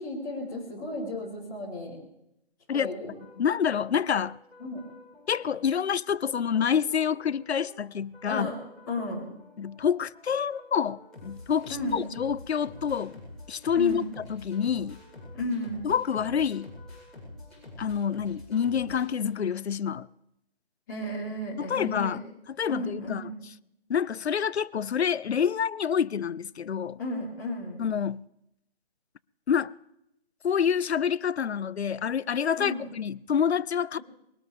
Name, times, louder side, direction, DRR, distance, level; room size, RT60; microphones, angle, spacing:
voice 1, 0.0-2.0 2.7-3.1 4.6-4.9 8.3-8.5 8.9-9.2 11.7-12.1 13.7-14.1 15.3-15.9 20.9-22.2 22.7-23.3 27.0-27.8 32.6-32.9, left 1 dB, 15° left, 4.3 m, -33 dB
sound 1, 3.1-19.8, left 2 dB, ahead, 4.8 m, -48 dB
voice 2, 3.4-4.4 5.3-8.5 9.6-13.2 13.5-14.0 14.3-15.0 15.8-16.7 17.8-20.1 21.6-22.2 22.6-23.2 23.9-27.0 27.8-28.2 29.5-29.7 30.4-34.0, left 7 dB, 80° left, 0.6 m, -27 dB
22.0 x 19.0 x 3.5 m
hypercardioid pair, 175°, 32 cm